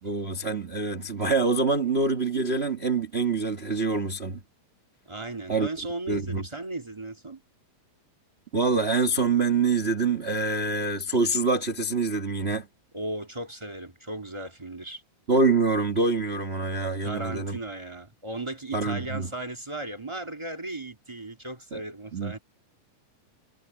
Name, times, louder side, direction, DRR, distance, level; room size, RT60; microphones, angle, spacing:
voice 1, 0.0-4.4 5.5-5.7 6.1-6.4 8.5-12.7 15.3-17.6 18.7-19.3 21.7-21.8 22.1-22.4, right 3 dB, 60° right, 0.6 m, -25 dB
voice 2, 5.0-7.4 12.9-15.0 17.0-22.4, right 2 dB, 15° right, 1.2 m, -36 dB
omnidirectional pair, 3.9 m